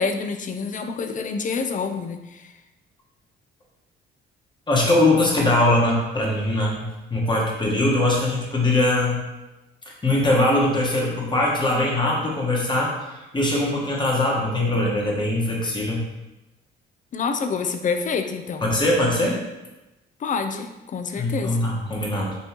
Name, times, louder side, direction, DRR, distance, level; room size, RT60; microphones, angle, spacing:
voice 1, 0.0-2.5 17.1-18.7 20.2-21.6, left 5 dB, 40° left, 7 dB, 0.4 m, -27 dB
voice 2, 4.7-9.2 9.9-12.9 13.3-16.0 18.6-19.4 21.2-22.3, left 1 dB, 25° left, -3 dB, 1.3 m, -21 dB
5.4 x 2.7 x 2.9 m, 1.0 s
cardioid pair, 90°, 20 cm